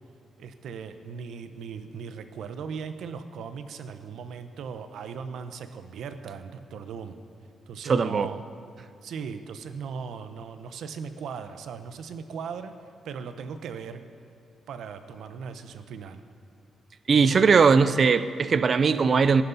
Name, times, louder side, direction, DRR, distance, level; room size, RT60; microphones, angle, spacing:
voice 1, 0.4-7.2 7.7-8.4 9.0-12.7 13.0-14.0 14.7-16.2, right 6 dB, 75° right, 9 dB, 0.8 m, -38 dB
voice 2, 7.8-8.3 17.1-19.4, right 5 dB, 35° right, 13 dB, 0.4 m, -20 dB
20.0 x 11.5 x 4.0 m, 2.3 s
wide cardioid pair, 175°, 0 cm